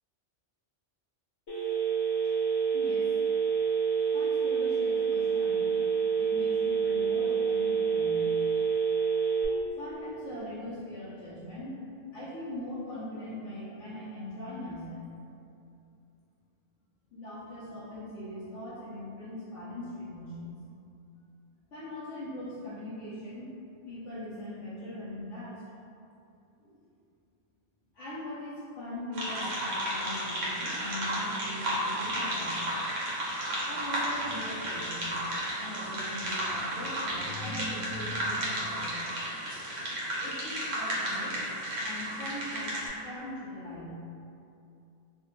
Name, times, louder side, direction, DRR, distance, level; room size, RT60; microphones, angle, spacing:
Telephone, 1.5-9.4, right 6 dB, 70° left, 1.1 m, -27 dB
voice 1, 2.7-3.2 4.1-8.3 9.8-15.0 17.1-20.5 21.7-23.6 23.9-25.6 26.6-26.8 27.9-33.0 33.4-35.2 35.5-39.1 40.2-44.1, left 1 dB, 90° left, -9 dB, 1.0 m, -41 dB
sound 1, 29.1-42.9, right 1 dB, 85° right, 1.1 m, -33 dB
3.2 x 2.1 x 3.0 m, 2.6 s
omnidirectional pair, 1.2 m